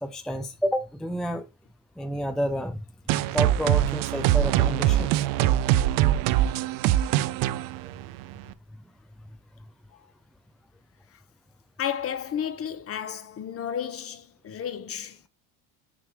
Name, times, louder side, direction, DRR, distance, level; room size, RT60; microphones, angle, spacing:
voice 1, 0.0-1.5 2.0-2.8 3.3-5.1, equal, ahead, 0.5 m, -29 dB
sound 1, 3.1-8.5, right 13 dB, 50° right, 0.6 m, -23 dB
voice 2, 11.8-15.2, left 9 dB, 35° left, 1.0 m, -32 dB
7.2 x 4.4 x 3.0 m
hypercardioid pair, 85°, 42 cm